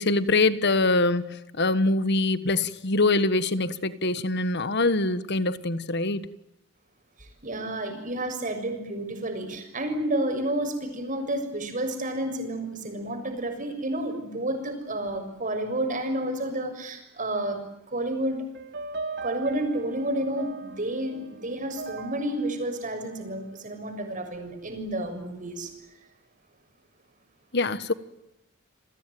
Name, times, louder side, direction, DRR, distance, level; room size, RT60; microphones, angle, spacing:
voice 1, 0.0-6.3 27.5-27.9, left 2 dB, 55° left, 1.5 m, -24 dB
voice 2, 7.2-17.6 17.9-18.4 19.2-25.7, right 1 dB, 40° right, 6.8 m, -30 dB
sound 1, 18.5-23.9, right 4 dB, 55° right, 2.6 m, -39 dB
30.0 x 21.0 x 9.3 m
head